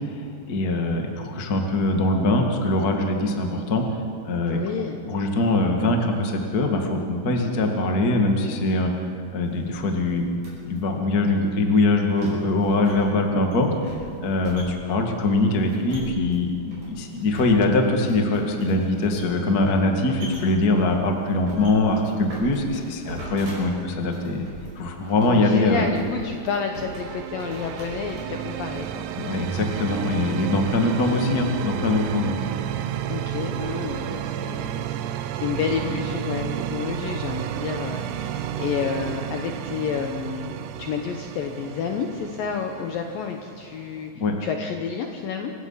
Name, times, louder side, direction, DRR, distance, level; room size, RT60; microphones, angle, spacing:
voice 1, 0.1-3.8 4.2-4.6 5.1-8.9 9.3-10.2 10.7-24.5 24.7-25.8 29.2-32.3 44.2-44.3, left 2 dB, 60° left, 3 dB, 0.9 m, -22 dB
voice 2, 4.5-5.0 25.3-29.1 31.0-31.2 33.1-44.1 44.4-45.5, left 6 dB, 75° left, 4 dB, 2.1 m, -30 dB
sound 1, 9.4-28.5, equal, 35° right, 6.3 m, -42 dB
sound 2, 26.3-44.1, right 10 dB, 80° right, 2.6 m, -32 dB
27.5 x 16.5 x 5.7 m, 2.3 s
omnidirectional pair, 5.3 m